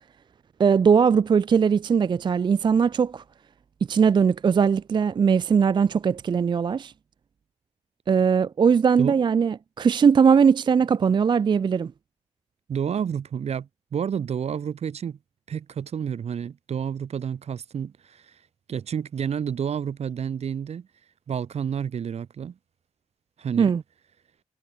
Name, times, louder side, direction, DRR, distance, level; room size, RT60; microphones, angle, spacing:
voice 1, 0.6-3.2 3.9-6.9 8.1-11.9 23.6-23.8, right 6 dB, 40° right, 0.3 m, -20 dB
voice 2, 12.7-15.2 15.5-18.3 18.7-20.9 21.3-22.5 23.4-23.7, right 8 dB, 60° right, 0.7 m, -30 dB
cardioid pair, 70°, 13 cm